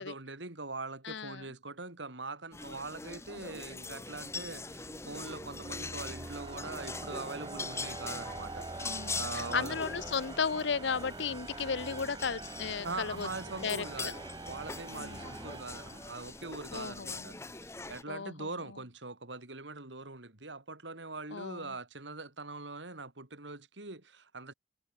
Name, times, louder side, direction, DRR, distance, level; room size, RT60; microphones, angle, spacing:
voice 1, 0.0-9.8 12.8-24.5, right 3 dB, 80° right, 3.5 m, -42 dB
voice 2, 1.0-1.4 3.4-3.6 8.8-13.3 13.6-14.1 14.9-15.3 16.7-17.4 18.1-18.5 21.3-21.7, left 5 dB, 80° left, 0.8 m, -35 dB
sound 1, 2.5-18.0, left 3 dB, 15° left, 1.1 m, -43 dB
sound 2, 3.8-16.7, right 3 dB, 25° right, 0.5 m, -45 dB
head